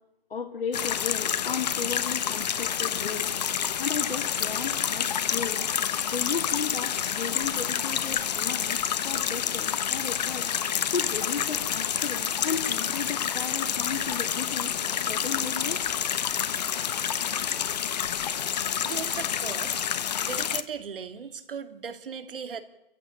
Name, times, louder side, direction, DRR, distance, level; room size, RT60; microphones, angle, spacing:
voice 1, 0.3-3.3 3.8-5.7 6.1-10.5 10.9-14.7 15.1-15.8, left 5 dB, 70° left, 2 dB, 2.7 m, -34 dB
sound 1, 0.7-20.6, left 9 dB, 45° left, 1.1 m, -28 dB
voice 2, 18.6-19.9 20.2-22.6, right 6 dB, 60° right, 10 dB, 2.4 m, -38 dB
27.0 x 15.0 x 9.0 m, 0.86 s
hypercardioid pair, 155°, 30 cm